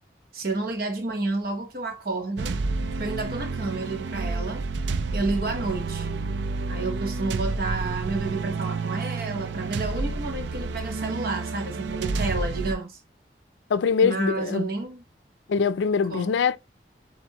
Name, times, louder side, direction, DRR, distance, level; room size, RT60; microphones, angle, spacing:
voice 1, 0.3-2.6 3.0-4.6 5.1-6.1 6.7-13.0 14.0-15.0 16.1-16.3, right 3 dB, 55° right, 0.9 m, -30 dB
sound 1, 2.4-12.7, right 3 dB, 85° right, 0.4 m, -30 dB
voice 2, 13.7-14.7 15.5-16.6, left 6 dB, 90° left, 0.4 m, -23 dB
7.1 x 2.6 x 2.9 m
head